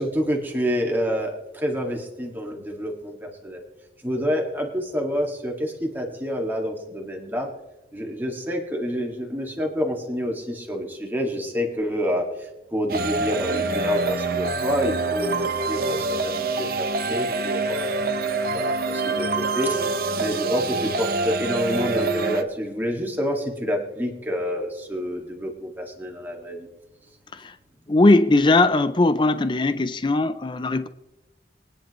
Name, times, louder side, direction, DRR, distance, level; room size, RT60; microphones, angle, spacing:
voice 1, 0.0-3.6 4.0-7.5 7.9-18.0 18.5-19.8 20.2-26.7, equal, 10° right, 2.0 m, -28 dB
sound 1, 12.9-22.4, right 3 dB, 55° right, 0.8 m, -25 dB
voice 2, 27.9-30.9, left 2 dB, 25° left, 0.5 m, -19 dB
23.0 x 10.0 x 3.1 m
head